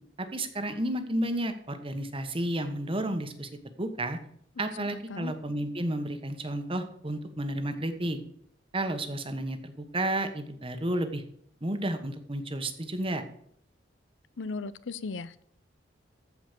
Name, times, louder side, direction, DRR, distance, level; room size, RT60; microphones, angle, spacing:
voice 1, 0.2-3.5 3.8-4.2 4.6-8.2 8.7-11.2 11.6-13.2, right 1 dB, 30° right, 8 dB, 1.3 m, -31 dB
voice 2, 4.6-5.3 14.4-15.4, left 4 dB, 80° left, 16 dB, 0.6 m, -37 dB
14.5 x 5.2 x 6.7 m, 0.67 s
head